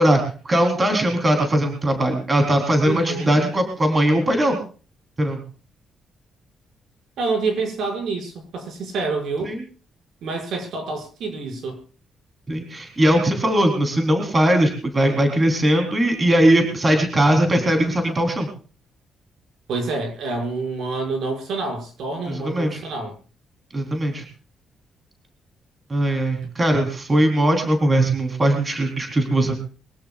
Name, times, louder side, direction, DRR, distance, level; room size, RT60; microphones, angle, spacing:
voice 1, 0.0-4.6 5.2-5.4 9.4-9.6 12.5-18.5 22.3-22.8 23.7-24.2 25.9-29.6, right 1 dB, 20° right, 4 dB, 3.9 m, -20 dB
voice 2, 2.8-3.3 7.2-9.5 10.2-11.8 19.7-23.1, right 3 dB, 70° right, 4 dB, 6.4 m, -27 dB
23.5 x 16.5 x 2.5 m, 0.39 s
cardioid pair, 160°, 0 cm